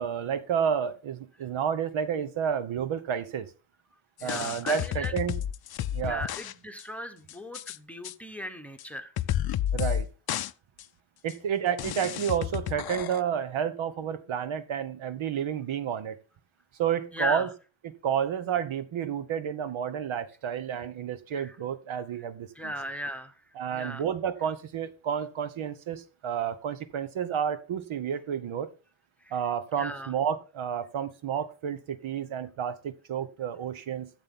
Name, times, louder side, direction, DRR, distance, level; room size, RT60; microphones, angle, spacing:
voice 1, 0.0-3.5 4.2-5.4 5.9-6.3 9.7-10.1 11.2-16.2 16.8-17.5 17.8-22.7 23.6-28.7 29.3-34.1, right 8 dB, 80° right, 1.0 m, -30 dB
sound 1, 4.2-6.5 6.8-6.9 7.3-7.8 8.0-8.1 8.8-8.9 9.2-10.0 10.3-10.5 10.8-10.9 11.3-11.4 11.8-13.2, left 11 dB, 55° left, 0.5 m, -31 dB
voice 2, 4.2-5.1 6.0-9.1 17.1-17.5 21.3-21.5 22.6-23.3 23.7-24.0 29.2-29.3 29.8-30.1, equal, 5° left, 1.0 m, -37 dB
13.0 x 7.4 x 3.7 m
wide cardioid pair, 150°, 47 cm